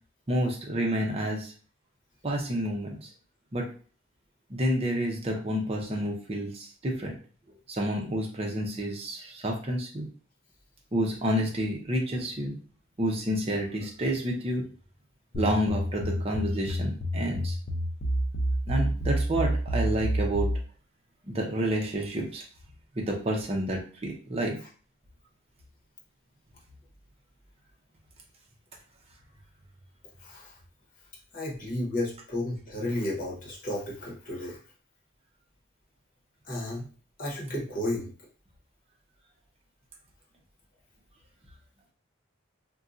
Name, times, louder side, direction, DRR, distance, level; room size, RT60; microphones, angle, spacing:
voice 1, 0.3-1.5 2.2-3.1 3.5-3.7 4.5-7.1 7.7-10.1 10.9-12.5 13.0-14.6 15.3-17.6 18.7-20.5 21.3-22.4 23.0-24.5, equal, 30° right, 0 dB, 0.7 m, -29 dB
sound 1, 15.3-20.6, equal, 60° left, 0.6 m, -29 dB
voice 2, 30.2-30.5 31.3-34.6 36.4-36.9 37.2-38.1, left 1 dB, 45° left, -4 dB, 1.1 m, -32 dB
2.7 x 2.2 x 3.7 m, 0.40 s
head